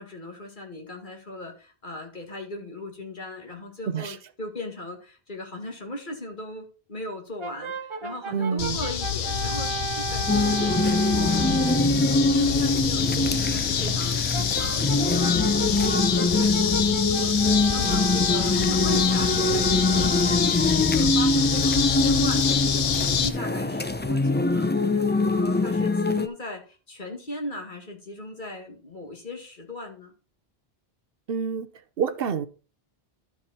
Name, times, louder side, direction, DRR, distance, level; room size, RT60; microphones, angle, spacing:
voice 1, 0.0-20.4 20.8-30.1, left 1 dB, 50° left, 2.2 m, -38 dB
voice 2, 3.9-4.2 8.3-8.8 31.3-31.7 32.0-32.5, right 6 dB, 70° right, 1.0 m, -27 dB
Brass instrument, 7.4-12.0 14.3-20.7, right 6 dB, 35° right, 0.6 m, -35 dB
sound 1, 8.6-23.3, left 8 dB, 70° left, 0.9 m, -26 dB
sound 2, 10.3-26.3, left 2 dB, 15° left, 0.4 m, -23 dB
12.0 x 4.8 x 4.2 m
omnidirectional pair, 1.0 m